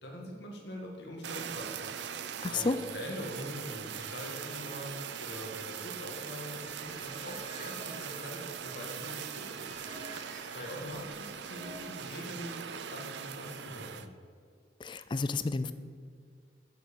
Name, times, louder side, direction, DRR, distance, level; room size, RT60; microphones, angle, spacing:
voice 1, 0.0-1.8 2.5-4.9 5.2-9.8 10.5-14.1, equal, 75° left, 0 dB, 2.0 m, -43 dB
Fire, 1.2-14.1, right 8 dB, 75° right, 0.5 m, -41 dB
voice 2, 2.4-2.8 14.8-15.7, left 3 dB, 25° left, 12 dB, 0.3 m, -31 dB
sound 1, 6.6-12.3, right 1 dB, 45° right, 1.9 m, -51 dB
7.7 x 7.6 x 5.4 m, 2.1 s
head